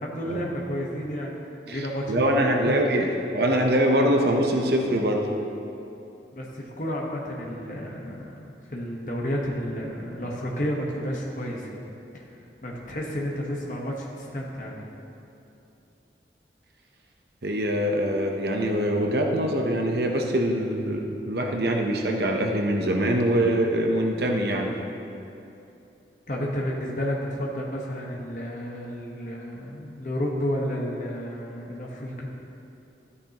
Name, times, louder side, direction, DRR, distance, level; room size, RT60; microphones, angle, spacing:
voice 1, 0.0-2.8 6.3-8.3 8.7-11.8 12.1-12.3 12.6-14.9 26.3-32.3, equal, 45° left, -3 dB, 1.2 m, -31 dB
voice 2, 2.1-5.3 17.4-24.8, right 1 dB, 65° right, 2 dB, 0.8 m, -23 dB
13.0 x 9.6 x 2.9 m, 2.8 s
head